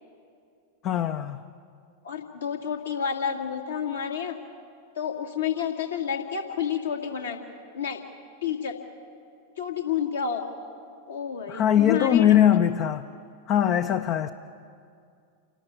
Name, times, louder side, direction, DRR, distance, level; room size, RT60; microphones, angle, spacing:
voice 1, 0.8-1.4 11.5-13.1 13.5-14.3, left 10 dB, 35° left, 0.6 m, -21 dB
voice 2, 2.0-4.4 5.0-7.4 7.7-8.0 8.4-8.7 9.6-10.4 11.1-12.4, left 8 dB, 70° left, 2.2 m, -29 dB
28.5 x 12.5 x 8.3 m
figure-of-eight pair, 90°, 0 cm